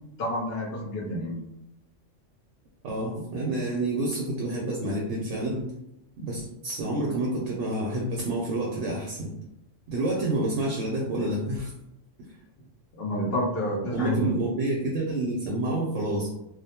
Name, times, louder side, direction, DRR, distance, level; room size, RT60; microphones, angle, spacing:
voice 1, 0.2-1.4 12.9-14.3, equal, 60° left, -5 dB, 0.7 m, -29 dB
voice 2, 2.8-5.7 6.2-9.3 9.9-11.7 13.9-16.3, right 1 dB, 70° right, -2 dB, 0.8 m, -28 dB
2.3 x 2.1 x 2.7 m, 0.83 s
omnidirectional pair, 1.4 m